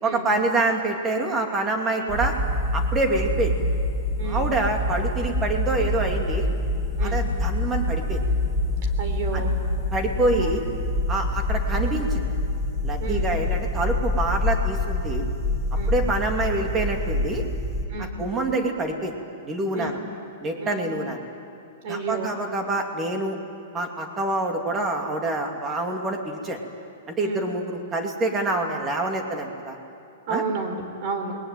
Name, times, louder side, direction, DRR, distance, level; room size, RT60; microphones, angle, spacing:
voice 1, 0.0-2.3 2.7-3.5 4.2-6.5 7.0-8.2 9.3-9.4 9.9-10.6 11.1-12.3 12.8-15.2 15.9-17.4 18.0-19.1 19.4-20.0 20.4-21.2 21.9-23.4 23.7-26.6 27.1-29.8 30.3-30.4, right 2 dB, 15° right, 3 dB, 2.6 m, -26 dB
sound 1, 2.1-17.8, left 1 dB, ahead, 3.3 m, -26 dB
voice 2, 4.2-4.5 7.0-7.2 8.8-9.6 10.3-10.5 13.0-13.3 15.8-16.0 17.9-18.2 19.7-20.0 20.6-20.9 21.8-22.3 27.2-27.5 30.3-31.4, right 4 dB, 40° right, 6 dB, 3.5 m, -31 dB
28.5 x 21.5 x 9.4 m, 2.5 s
supercardioid pair, 165°, 0 cm